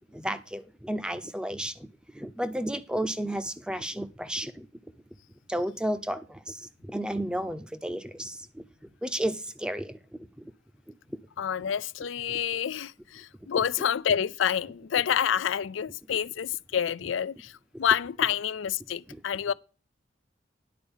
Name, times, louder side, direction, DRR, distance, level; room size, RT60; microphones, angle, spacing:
voice 1, 0.1-1.9 2.1-4.7 5.5-8.6 9.0-10.0 10.4-10.5 12.3-12.4, right 1 dB, 5° right, 0.6 m, -32 dB
voice 2, 11.4-19.5, left 8 dB, 80° left, 0.4 m, -28 dB
10.5 x 4.6 x 7.1 m
head